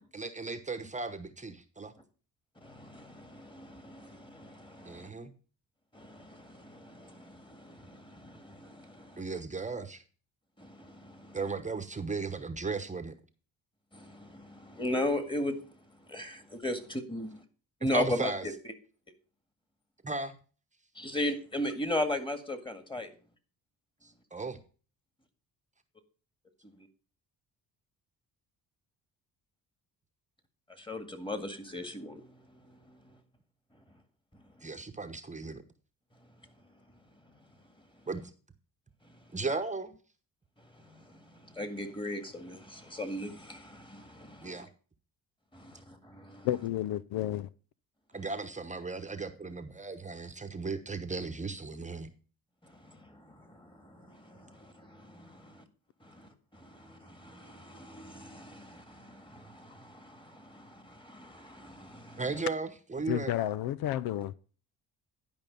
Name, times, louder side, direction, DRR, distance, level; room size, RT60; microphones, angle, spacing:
voice 1, 0.1-1.9 4.8-5.3 9.2-10.0 11.3-13.1 17.8-18.5 20.0-20.3 24.0-24.6 34.6-35.6 38.1-38.2 39.3-39.9 44.4-44.7 48.1-52.1 62.2-63.3, right 4 dB, 20° right, 1.0 m, -36 dB
voice 2, 2.6-5.1 5.9-9.2 10.6-11.4 13.9-15.6 16.1-17.4 17.8-18.5 21.0-23.1 30.8-33.1 39.1-39.2 40.9-44.6 45.5-46.5 52.6-55.6 56.0-62.2, left 1 dB, 15° left, 1.9 m, -38 dB
voice 3, 46.4-47.5 63.1-64.3, left 13 dB, 75° left, 0.5 m, -31 dB
11.5 x 5.3 x 5.3 m
cardioid pair, 85°, 36 cm